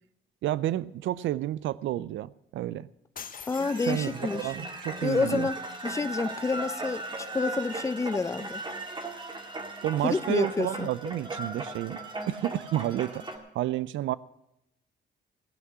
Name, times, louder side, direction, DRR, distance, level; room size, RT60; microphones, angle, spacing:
voice 1, 0.4-2.9 3.8-5.5 9.8-12.0 12.3-13.2 13.5-14.2, right 13 dB, 70° right, 0.5 m, -30 dB
sound 1, 3.2-4.6, left 7 dB, 45° left, 0.9 m, -45 dB
voice 2, 3.5-4.5 5.0-5.6 5.8-7.1 7.3-8.6 10.0-10.9, left 4 dB, 15° left, 0.5 m, -28 dB
sound 2, 3.5-13.4, right 2 dB, 25° right, 1.9 m, -37 dB
16.5 x 6.0 x 9.6 m
cardioid pair, 90°, 20 cm